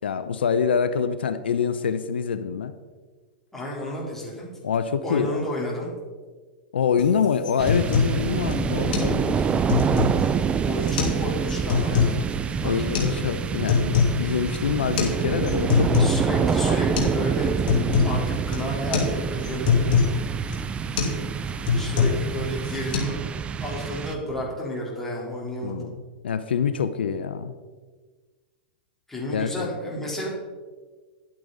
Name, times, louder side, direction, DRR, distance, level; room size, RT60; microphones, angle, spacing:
voice 1, 0.0-2.7 4.6-5.5 6.7-9.6 12.6-15.9 16.6-16.8 25.6-25.9 26.2-27.5 29.3-29.7, left 6 dB, 85° left, 12 dB, 0.6 m, -25 dB
voice 2, 3.5-4.5 5.0-5.9 10.6-12.3 12.6-13.2 15.6-17.6 18.0-19.7 21.7-23.2 23.6-25.9 29.1-30.3, left 1 dB, 5° left, -5 dB, 3.5 m, -32 dB
sound 1, 7.0-7.1 7.4-8.2 8.5-8.6 8.9-9.1 9.5-10.3 10.8-11.2 11.5-12.2 12.9-13.1 13.5-14.2 14.5-14.6 15.0-15.1 15.5-16.2 16.5-16.6 17.0-17.2 17.4-18.2 18.5-18.7 18.9-19.1 19.4-20.1 20.5-20.7 21.0-21.2 21.5-22.3 22.6-23.0, left 6 dB, 60° left, 2.5 m, -23 dB
sound 2, 7.6-24.5, right 7 dB, 20° right, 0.4 m, -27 dB
11.0 x 8.6 x 4.0 m, 1.4 s
hypercardioid pair, 115°, 6 cm